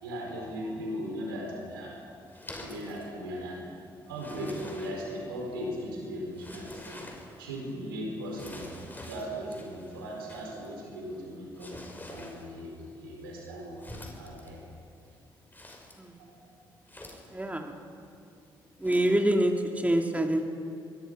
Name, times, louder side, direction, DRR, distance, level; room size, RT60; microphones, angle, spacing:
voice 1, 0.0-2.0 2.5-3.7 4.1-7.1 7.4-8.7 9.0-11.8 12.1-14.6 16.2-16.3, equal, 85° right, -1 dB, 4.6 m, -38 dB
sound 1, 1.4-19.2, left 1 dB, 15° left, 5.8 m, -49 dB
voice 2, 17.3-17.7 18.8-20.4, right 1 dB, 10° right, 3 dB, 2.6 m, -26 dB
25.0 x 22.5 x 5.5 m, 2.5 s
hypercardioid pair, 45°, 12 cm